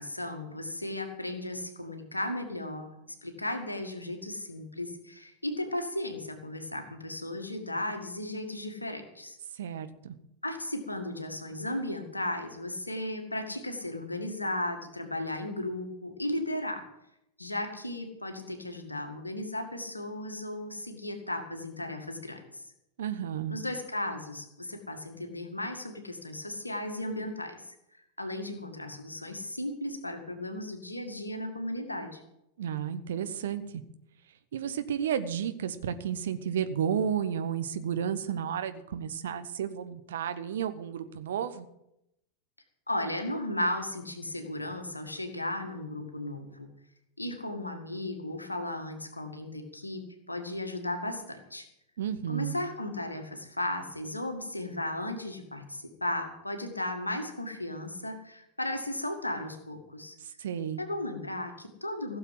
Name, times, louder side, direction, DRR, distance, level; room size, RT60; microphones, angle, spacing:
voice 1, 0.0-9.4 10.4-16.9 17.4-22.6 23.5-27.8 28.2-32.2 42.9-46.7 47.2-51.7 52.3-60.2 60.8-62.2, left 1 dB, 85° left, 6 dB, 1.9 m, -35 dB
voice 2, 9.5-10.1 23.0-23.6 32.6-33.8 34.5-41.7 52.0-52.6 60.2-60.8, right 8 dB, 60° right, 11 dB, 1.0 m, -32 dB
16.0 x 7.2 x 7.7 m, 0.83 s
figure-of-eight pair, 90°, 0 cm